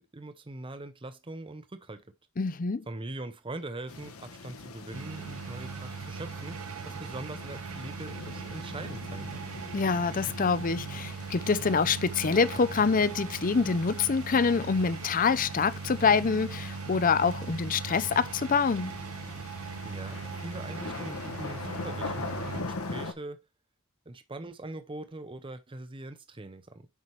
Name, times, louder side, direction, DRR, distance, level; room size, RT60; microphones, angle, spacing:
voice 1, 0.0-2.0 2.9-6.6 6.8-9.4 19.8-22.4 22.7-23.4 24.1-26.9, right 2 dB, 25° right, 0.7 m, -42 dB
voice 2, 2.4-2.8 9.7-18.9, left 5 dB, 40° left, 0.5 m, -26 dB
sound 1, 3.9-23.1, left 3 dB, 70° left, 1.2 m, -43 dB
sound 2, 4.9-22.6, right 5 dB, 70° right, 0.6 m, -39 dB
8.3 x 5.7 x 3.1 m
head